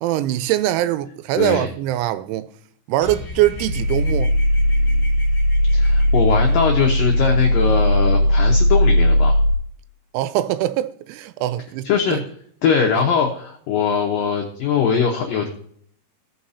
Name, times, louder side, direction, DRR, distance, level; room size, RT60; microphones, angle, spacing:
voice 1, 0.0-2.5 2.9-4.3 10.1-12.2 13.0-13.1, right 14 dB, 85° right, 3.0 m, -22 dB
voice 2, 1.4-1.7 5.7-9.4 11.8-12.2 12.6-15.5, left 6 dB, 90° left, 1.9 m, -21 dB
sound 1, 3.0-8.6, left 2 dB, 25° left, 1.7 m, -38 dB
sound 2, 3.6-9.5, equal, 45° right, 2.8 m, -17 dB
17.0 x 5.9 x 2.7 m
omnidirectional pair, 5.4 m